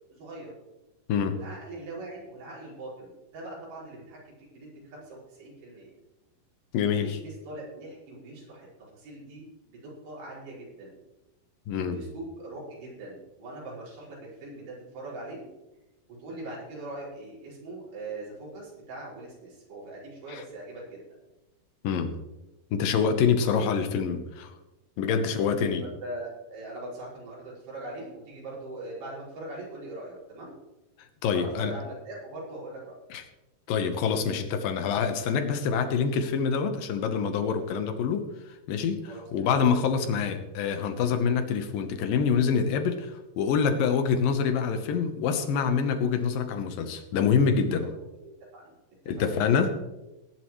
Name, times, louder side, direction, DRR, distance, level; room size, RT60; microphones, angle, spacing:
voice 1, 0.1-0.5 1.3-5.9 6.9-11.0 11.8-15.5 16.2-21.0 25.1-25.4 25.8-30.6 31.3-32.9 39.1-39.6 47.7-47.9 48.2-48.7 49.0-49.3, right 2 dB, 80° right, -6 dB, 7.5 m, -41 dB
voice 2, 6.7-7.2 11.7-12.0 20.3-20.4 21.8-22.1 22.7-24.5 25.0-25.8 31.2-31.7 33.1-33.2 33.7-38.3 38.7-47.9 49.1-49.8, left 6 dB, 70° left, 7 dB, 2.5 m, -26 dB
19.5 x 11.0 x 3.2 m, 1.0 s
omnidirectional pair, 4.6 m